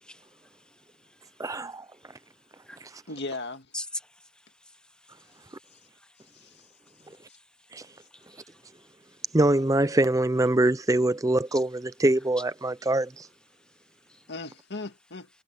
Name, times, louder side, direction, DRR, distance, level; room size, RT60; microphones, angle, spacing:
voice 1, 0.0-1.4 2.0-2.2 2.6-2.8 3.7-6.5 7.0-9.3 11.5-11.6 13.6-14.3, left 1 dB, 5° left, 1.0 m, -46 dB
voice 2, 1.4-1.8 7.7-7.8 9.3-13.3, right 1 dB, 15° right, 0.5 m, -24 dB
voice 3, 3.1-3.7 6.3-6.6 7.0-7.2 14.3-15.3, left 2 dB, 55° left, 2.1 m, -37 dB
head